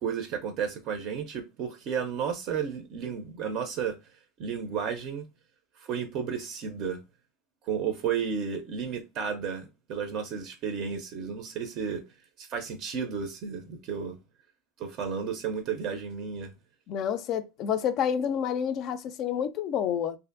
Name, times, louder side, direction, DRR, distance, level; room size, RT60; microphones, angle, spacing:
voice 1, 0.0-4.0 4.4-5.3 5.8-7.0 7.6-12.0 12.4-14.2 14.8-16.5, right 7 dB, 45° right, 0.5 m, -32 dB
voice 2, 16.9-20.2, left 8 dB, 45° left, 0.3 m, -29 dB
2.5 x 2.4 x 2.4 m
supercardioid pair, 140°, 0 cm